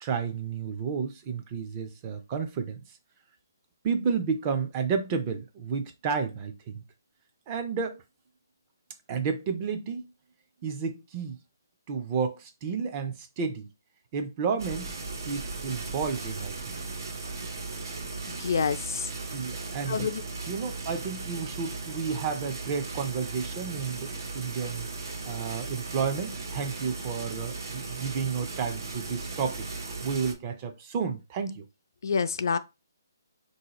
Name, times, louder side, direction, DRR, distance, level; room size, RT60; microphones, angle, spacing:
voice 1, 0.0-2.8 3.8-6.8 7.5-8.0 9.1-10.1 10.6-11.4 11.9-13.7 14.1-15.0 15.3-16.6 19.3-20.1 20.5-24.9 25.3-31.6, right 6 dB, 25° right, 0.4 m, -31 dB
sound 1, 14.6-30.3, right 3 dB, 65° right, 0.8 m, -37 dB
voice 2, 18.3-19.1 19.9-20.2 32.0-32.6, left 6 dB, 60° left, 0.3 m, -27 dB
3.9 x 2.7 x 2.9 m
hypercardioid pair, 165°, 2 cm